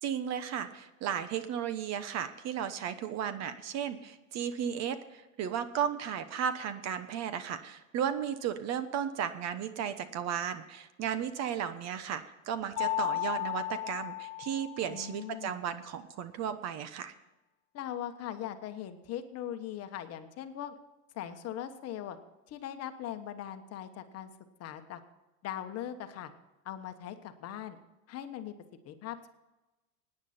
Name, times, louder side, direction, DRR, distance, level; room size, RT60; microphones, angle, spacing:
voice 1, 0.0-17.1, right 8 dB, 40° right, 12 dB, 1.1 m, -34 dB
Mallet percussion, 12.8-15.3, left 15 dB, 65° left, 1.5 m, -34 dB
voice 2, 14.9-15.6 17.7-20.7 21.1-22.2 22.5-24.3 24.6-25.0 25.4-26.3 26.6-27.8 28.1-28.5 28.8-29.3, left 11 dB, 40° left, 8 dB, 1.3 m, -40 dB
17.0 x 9.9 x 4.4 m, 1.0 s
supercardioid pair, 125°, 40 cm